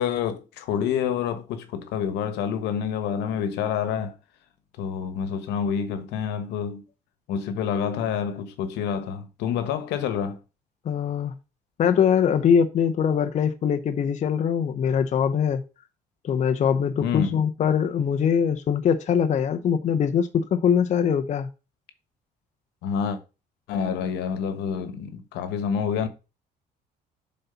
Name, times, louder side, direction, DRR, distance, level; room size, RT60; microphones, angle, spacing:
voice 1, 0.0-4.1 4.8-6.8 7.3-10.4 17.0-17.4 22.8-23.2 23.7-26.1, left 7 dB, 85° left, 1.2 m, -28 dB
voice 2, 10.8-11.3 11.8-15.6 16.2-21.5, left 7 dB, 45° left, 0.8 m, -22 dB
7.6 x 4.2 x 5.7 m
cardioid pair, 110°, 17 cm